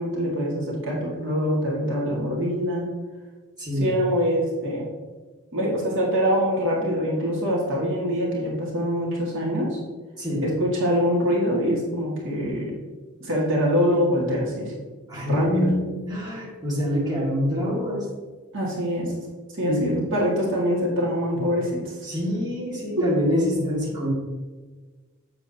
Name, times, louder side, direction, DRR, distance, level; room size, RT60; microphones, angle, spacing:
voice 1, 0.0-2.9 3.8-4.9 5.5-9.8 10.4-12.7 13.2-14.7 15.3-15.7 18.5-19.1 19.5-22.0 23.0-23.1, equal, 60° right, -4 dB, 1.9 m, -24 dB
voice 2, 3.6-3.9 10.2-10.4 15.1-18.1 19.7-19.8 21.3-21.4 22.0-24.1, equal, 20° right, -7 dB, 2.0 m, -25 dB
7.3 x 7.1 x 2.8 m, 1.3 s
head